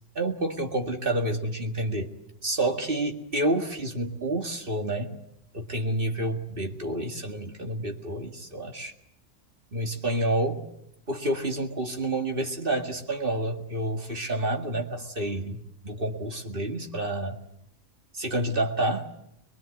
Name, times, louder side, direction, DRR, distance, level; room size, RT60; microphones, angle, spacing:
voice 1, 0.2-2.1 2.4-5.2 5.5-8.9 9.7-10.6 11.1-17.4 18.1-19.1, right 1 dB, 40° right, 3 dB, 2.1 m, -29 dB
23.5 x 23.0 x 8.1 m, 0.79 s
omnidirectional pair, 1.4 m